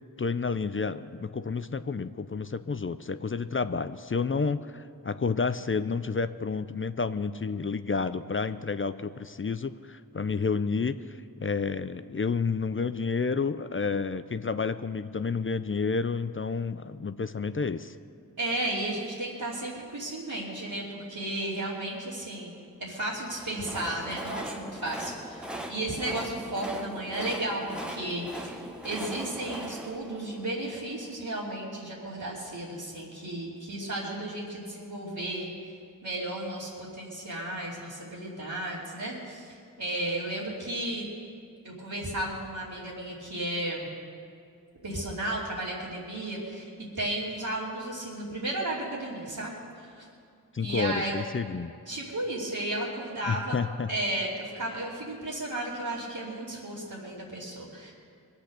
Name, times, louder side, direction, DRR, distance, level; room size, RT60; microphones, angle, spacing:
voice 1, 0.2-11.0 11.4-17.9 50.5-51.7 53.3-53.9, left 5 dB, 35° left, 12 dB, 0.5 m, -30 dB
voice 2, 18.4-22.5 22.8-35.7 36.0-41.0 41.6-43.9 44.8-50.0 50.6-51.1 51.9-53.6 53.9-57.9, right 1 dB, 70° right, -9 dB, 2.8 m, -34 dB
Train, 23.1-31.3, right 1 dB, ahead, 1.3 m, -40 dB
21.0 x 8.2 x 6.7 m, 2.4 s
cardioid pair, 40°, 38 cm